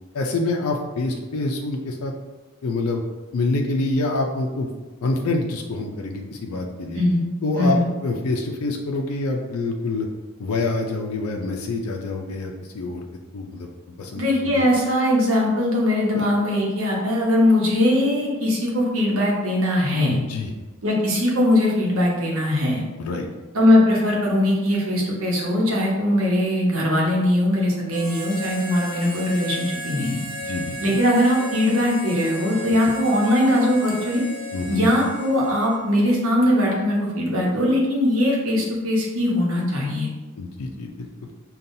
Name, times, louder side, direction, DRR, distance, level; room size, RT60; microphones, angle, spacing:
voice 1, 0.1-2.1 2.6-3.0 3.3-4.7 5.0-7.0 7.4-10.1 10.4-13.0 13.3-13.7 14.0-14.6 16.1-16.3 20.1-20.5 23.0-23.3 30.4-31.0 34.5-34.9 40.4-41.3, left 2 dB, 85° left, 1 dB, 0.4 m, -26 dB
voice 2, 14.1-20.2 20.8-22.8 23.5-30.2 30.8-34.2 34.7-40.1, left 1 dB, 70° right, -3 dB, 1.0 m, -20 dB
Harmonica, 27.9-35.9, equal, 40° right, 1.0 m, -35 dB
5.3 x 2.3 x 2.6 m, 1.2 s
head